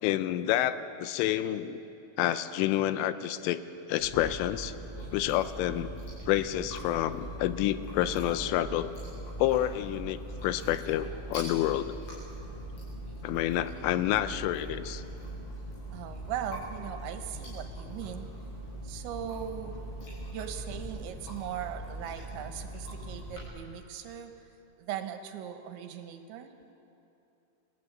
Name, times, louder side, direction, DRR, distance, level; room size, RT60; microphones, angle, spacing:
voice 1, 0.0-1.8 2.2-3.6 3.9-4.7 5.1-5.9 6.3-9.0 9.4-12.0 13.2-15.0, left 13 dB, 90° left, 12 dB, 3.3 m, -29 dB
Chewing mastication, 4.0-23.4, right 1 dB, 65° left, 10.5 m, -41 dB
voice 2, 15.9-18.3 18.8-19.8 20.3-24.3 24.8-26.5, right 9 dB, 75° right, 7 dB, 3.3 m, -39 dB
28.5 x 15.5 x 9.6 m, 2.9 s
omnidirectional pair, 5.6 m